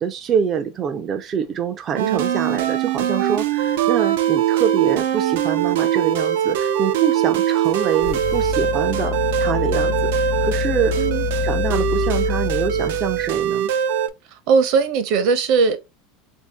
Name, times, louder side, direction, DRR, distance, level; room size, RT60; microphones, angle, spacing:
voice 1, 0.0-10.9 11.4-13.7, right 7 dB, 30° right, 0.4 m, -25 dB
sound 1, 2.0-14.1, right 10 dB, 90° right, 0.5 m, -22 dB
sound 2, 7.6-13.5, left 9 dB, 50° left, 0.6 m, -27 dB
voice 2, 14.5-15.8, right 5 dB, 55° right, 0.7 m, -18 dB
3.4 x 2.6 x 3.4 m
supercardioid pair, 145°, 0 cm